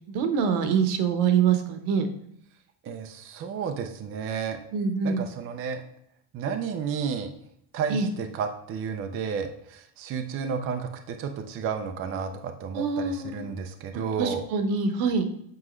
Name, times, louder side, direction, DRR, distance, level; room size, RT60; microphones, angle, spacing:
voice 1, 0.1-2.1 4.7-5.3 7.9-8.1 12.7-13.5 14.2-15.2, right 6 dB, 70° right, 7 dB, 1.1 m, -25 dB
voice 2, 2.8-4.6 5.0-5.8 6.3-7.3 7.7-14.5, right 6 dB, 30° right, 5 dB, 0.4 m, -32 dB
7.5 x 4.8 x 3.1 m, 0.73 s
cardioid pair, 140°, 50 cm